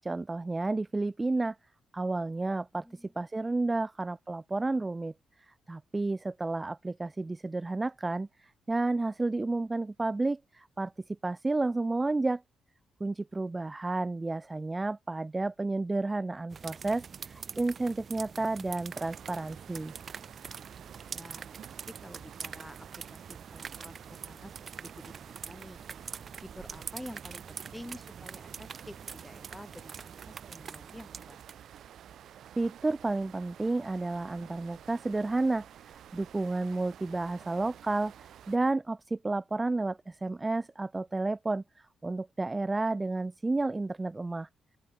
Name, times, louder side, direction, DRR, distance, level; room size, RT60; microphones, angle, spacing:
voice 1, 0.0-1.6 1.9-5.1 5.5-12.4 13.0-19.9 32.6-44.5, right 2 dB, 20° right, 0.4 m, -31 dB
voice 2, 2.7-3.1 21.1-21.6 21.9-25.8 26.5-31.4, left 1 dB, 5° left, 3.5 m, -49 dB
sound 1, 16.5-31.8, right 6 dB, 45° right, 2.6 m, -45 dB
sound 2, 18.9-38.6, right 10 dB, 70° right, 2.0 m, -51 dB
open air
cardioid pair, 105°, 0 cm